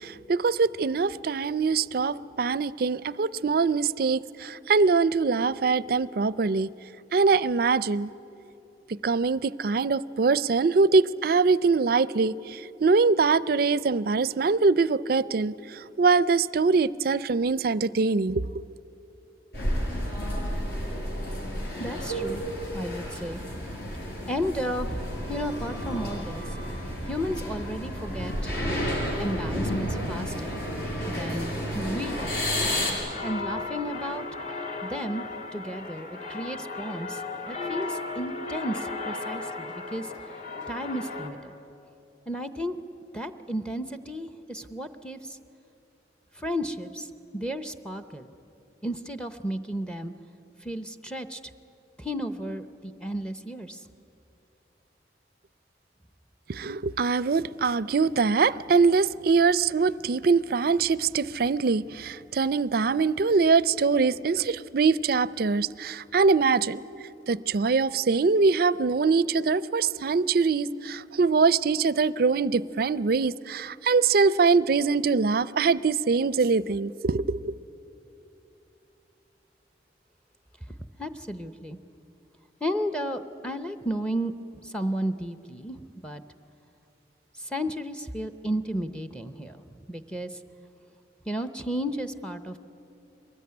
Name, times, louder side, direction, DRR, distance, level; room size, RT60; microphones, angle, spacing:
voice 1, 0.0-6.7 7.1-8.1 8.9-18.6 56.5-66.8 67.3-77.5, right 4 dB, 55° right, 0.4 m, -23 dB
sound 1, 19.5-32.9, equal, 65° left, 5.8 m, -31 dB
voice 2, 21.8-23.4 24.3-26.4 27.1-28.5 29.2-30.6 31.1-32.7 33.2-34.3 34.8-35.3 35.5-40.1 40.7-41.5 42.3-42.8 43.1-45.4 46.3-47.1 47.3-48.3 48.8-50.1 50.6-51.5 52.0-53.8 81.0-81.8 82.6-84.3 84.6-86.2 87.4-89.6 89.9-90.4 91.3-92.6, equal, 5° left, 0.7 m, -33 dB
sound 2, 32.0-41.3, left 3 dB, 45° left, 2.3 m, -36 dB
23.0 x 20.0 x 9.6 m
head